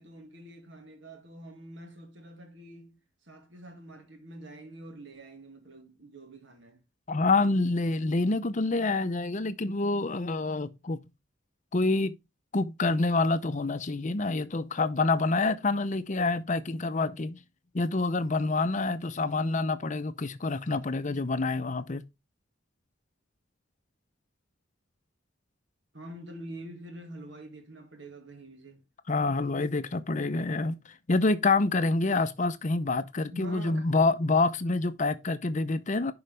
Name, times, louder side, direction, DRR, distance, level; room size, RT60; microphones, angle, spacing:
voice 1, 0.0-3.0 3.3-6.8 25.9-28.8 33.3-33.9, right 1 dB, 65° right, 2.0 m, -46 dB
voice 2, 7.1-11.0 11.7-12.1 12.5-17.4 17.7-22.0 29.1-30.8 31.1-36.1, left 3 dB, 40° left, 0.6 m, -27 dB
11.0 x 4.8 x 3.3 m
head